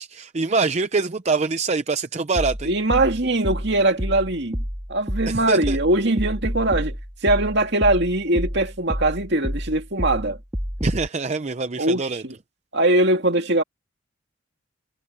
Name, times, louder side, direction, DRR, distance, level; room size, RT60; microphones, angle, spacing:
voice 1, 0.0-2.7 5.3-5.8 10.8-12.2, right 4 dB, 35° right, 0.6 m, -24 dB
sound 1, 2.4-11.1, equal, 15° right, 2.7 m, -29 dB
voice 2, 2.7-4.6 4.9-7.0 7.2-10.4 11.8-12.3 12.7-13.6, right 1 dB, 55° right, 2.4 m, -21 dB
head